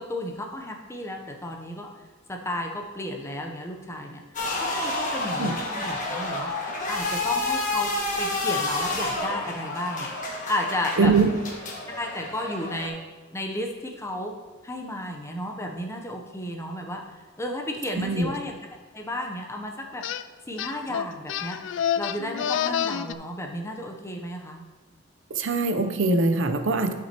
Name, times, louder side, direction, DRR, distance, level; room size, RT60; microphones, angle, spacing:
voice 1, 0.0-1.9 2.3-4.2 4.6-6.5 6.9-10.1 10.5-11.1 12.0-13.0 13.3-14.3 14.6-17.0 17.4-18.6 18.9-20.0 20.5-21.6 22.0-24.6, left 1 dB, 15° left, 2 dB, 0.7 m, -33 dB
sound 1, 4.3-12.9, left 2 dB, 40° left, 1.5 m, -29 dB
voice 2, 11.0-11.3 18.0-18.3 25.3-26.9, right 3 dB, 70° right, 8 dB, 0.6 m, -22 dB
sound 2, 20.0-20.2 20.6-23.1, left 9 dB, 65° left, 0.3 m, -28 dB
11.5 x 6.1 x 2.9 m, 1.3 s
head